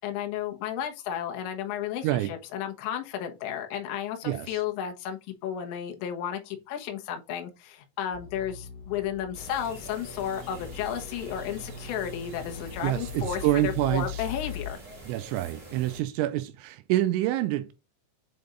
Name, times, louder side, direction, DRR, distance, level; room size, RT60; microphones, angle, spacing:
voice 1, 0.0-14.8, left 9 dB, 75° left, 3.2 m, -33 dB
voice 2, 4.2-4.6 12.8-14.2 15.1-17.7, right 14 dB, 85° right, 2.8 m, -27 dB
sound 1, 8.1-14.7, left 6 dB, 50° left, 3.4 m, -41 dB
sound 2, 9.3-16.0, right 1 dB, 35° right, 1.8 m, -46 dB
7.8 x 3.4 x 3.8 m
omnidirectional pair, 5.5 m